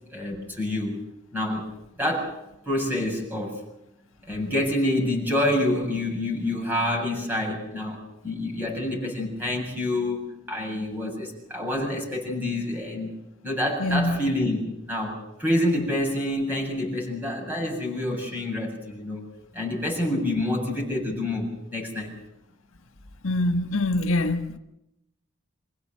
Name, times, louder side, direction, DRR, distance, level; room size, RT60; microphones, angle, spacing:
voice 1, 0.1-1.0 1.3-1.7 2.0-2.3 2.6-3.6 4.2-19.2 19.5-22.1, left 1 dB, 10° right, 7.6 m, -27 dB
voice 2, 13.8-14.3 23.2-24.6, left 2 dB, 90° left, 1.7 m, -24 dB
26.5 x 16.5 x 7.9 m
head